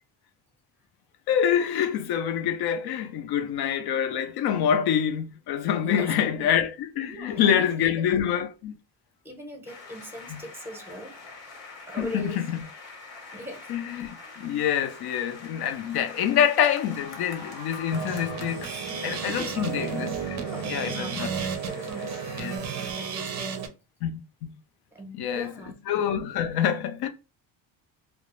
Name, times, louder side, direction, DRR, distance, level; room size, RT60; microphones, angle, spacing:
voice 1, 1.3-8.7 10.3-10.4 12.0-12.6 13.7-20.4 20.7-21.3 22.4-22.5 24.0-24.5 25.1-25.5 25.9-27.1, left 9 dB, 55° left, 0.5 m, -26 dB
voice 2, 5.8-6.5 7.1-8.3 9.2-11.1 11.9-12.4 13.3-13.7 19.2-20.1 20.4-23.7 24.9-25.8, right 1 dB, 5° right, 0.7 m, -40 dB
sound 1, 9.7-22.6, left 3 dB, 85° left, 1.1 m, -44 dB
sound 2, 17.9-23.7, right 6 dB, 35° right, 0.5 m, -33 dB
2.3 x 2.0 x 2.9 m
cardioid pair, 125°, 46 cm